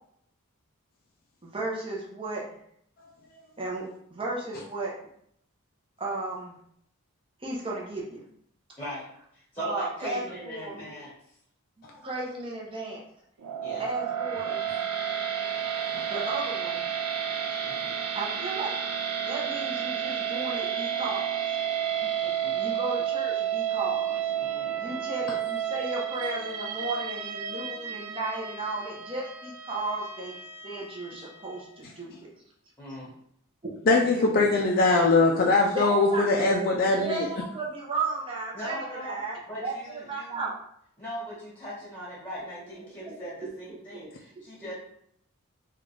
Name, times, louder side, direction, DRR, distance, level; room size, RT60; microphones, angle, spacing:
voice 1, 1.4-2.4 3.6-3.8 4.1-4.9 6.0-6.5 7.4-8.2 9.6-10.8 12.0-13.0 13.8-14.6 16.1-16.8 18.1-18.7 19.2-21.4 22.5-24.2 24.8-30.4 30.6-32.3 33.6-34.7 35.3-36.2 36.9-40.5 43.0-43.3 43.7-44.1 44.3-44.7, right 3 dB, 25° right, -3 dB, 0.7 m, -34 dB
voice 2, 9.3-11.1 13.6-13.9 17.6-18.0 22.0-22.5 24.4-25.0 32.8-33.1 38.5-39.2 39.5-40.5 41.0-44.7, equal, 10° left, -7 dB, 1.4 m, -40 dB
sound 1, 13.4-31.6, right 8 dB, 85° right, 0.4 m, -31 dB
voice 3, 33.9-37.3, left 3 dB, 40° left, -1 dB, 0.3 m, -22 dB
3.7 x 2.3 x 3.2 m, 0.70 s
head